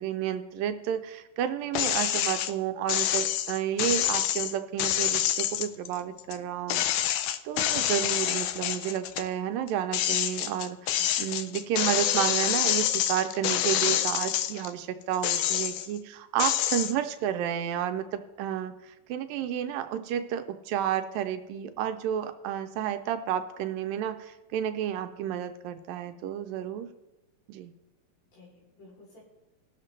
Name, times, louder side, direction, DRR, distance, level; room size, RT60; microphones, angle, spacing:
voice 1, 0.0-6.8 7.4-26.9 27.5-27.7, right 10 dB, 80° right, 8 dB, 2.2 m, -31 dB
sound 1, 1.7-2.5 2.9-6.4 6.7-9.3 9.7-14.7 15.1-16.0 16.4-16.9, left 12 dB, 85° left, 1.8 m, -27 dB
voice 2, 10.9-11.6 16.7-16.9 28.3-29.2, left 3 dB, 60° left, -5 dB, 4.5 m, -54 dB
19.5 x 6.7 x 3.2 m, 0.99 s
omnidirectional pair, 4.1 m